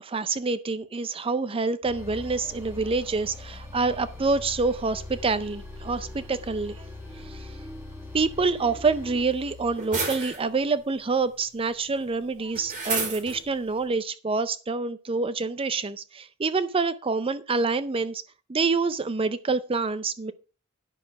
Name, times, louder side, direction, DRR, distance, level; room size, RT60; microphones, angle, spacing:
voice 1, 0.0-6.9 7.2-7.6 8.1-18.2 18.5-20.3, right 4 dB, 25° right, 0.5 m, -27 dB
sound 1, 1.8-9.8, left 6 dB, 80° left, 0.7 m, -46 dB
sound 2, 1.8-9.3, equal, 10° right, 1.2 m, -43 dB
sound 3, 2.0-13.9, right 4 dB, 40° right, 5.0 m, -38 dB
10.5 x 6.6 x 5.7 m
head